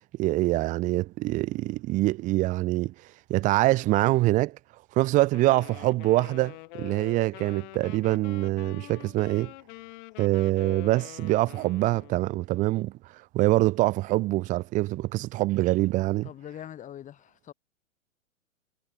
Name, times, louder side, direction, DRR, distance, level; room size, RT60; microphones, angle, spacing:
voice 1, 0.2-2.9 3.3-4.6 5.0-9.5 10.2-12.9 13.3-16.3, right 18 dB, 20° right, 0.9 m, -24 dB
Wind instrument woodwind instrument, 5.3-12.3, left 23 dB, 35° left, 2.6 m, -45 dB
voice 2, 16.2-17.5, left 10 dB, 20° left, 4.6 m, -42 dB
figure-of-eight pair, 115°, 41 cm